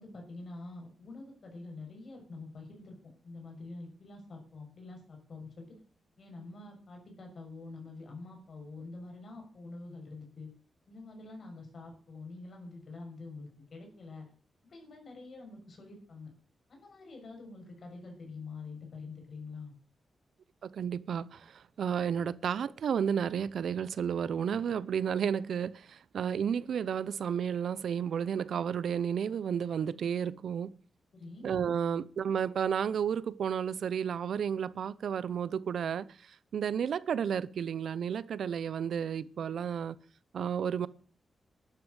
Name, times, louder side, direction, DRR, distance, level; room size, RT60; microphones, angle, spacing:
voice 1, 0.0-3.0 3.2-5.7 6.2-10.5 10.9-14.2 14.6-16.3 16.7-19.7 31.1-31.5, left 3 dB, 45° left, 6.6 m, -46 dB
voice 2, 20.6-30.7 31.4-40.0 40.3-40.9, right 8 dB, 75° right, 0.7 m, -32 dB
12.0 x 9.7 x 8.0 m
wide cardioid pair, 165°, 0 cm